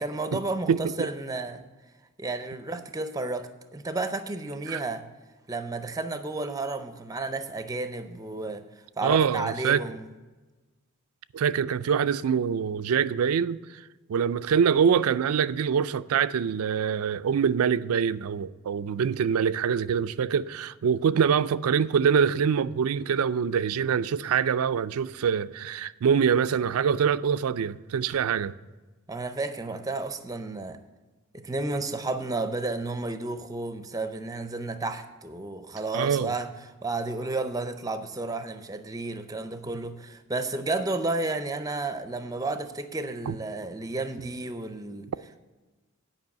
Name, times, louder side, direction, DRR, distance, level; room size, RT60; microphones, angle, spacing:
voice 1, 0.0-1.6 2.2-5.0 5.5-8.6 9.0-10.1 29.1-30.8 31.3-36.5 36.8-45.1, right 2 dB, 15° right, 0.5 m, -32 dB
voice 2, 0.7-1.1 4.7-4.8 9.0-9.8 11.3-13.6 14.1-28.5 35.9-36.3 43.3-43.4, right 7 dB, 85° right, 0.4 m, -24 dB
9.5 x 5.4 x 7.2 m
head